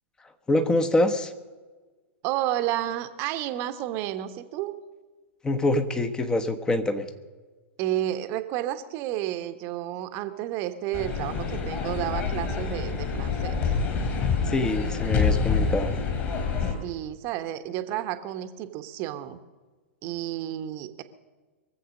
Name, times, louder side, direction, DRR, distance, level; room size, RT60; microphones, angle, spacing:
voice 1, 0.5-1.3 5.4-7.1 14.5-15.9, left 2 dB, 10° left, 8 dB, 1.2 m, -25 dB
voice 2, 2.2-4.8 7.8-13.7 16.8-19.4 20.0-21.0, right 13 dB, 35° right, 10 dB, 1.1 m, -31 dB
sound 1, 10.9-16.7, left 5 dB, 30° left, 3.3 m, -27 dB
23.0 x 7.8 x 6.5 m, 1.3 s
figure-of-eight pair, 105°, 7 cm